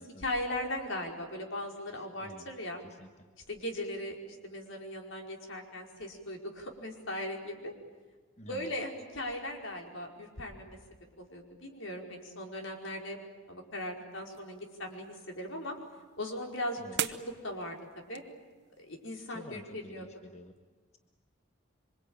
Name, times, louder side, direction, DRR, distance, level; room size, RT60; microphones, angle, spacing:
voice 1, 0.0-2.8 3.5-7.7 8.5-10.8 11.2-13.2 13.5-15.7 16.2-17.8 18.0-18.2 18.8-20.0, left 1 dB, 75° left, 1 dB, 4.9 m, -38 dB
voice 2, 1.9-2.5 2.8-3.3 8.4-8.7 16.8-17.0 19.3-20.5, left 1 dB, 35° left, 4 dB, 1.4 m, -49 dB
sound 1, 14.1-19.2, right 10 dB, 55° right, 1.0 m, -43 dB
27.0 x 25.0 x 8.9 m, 1.4 s
head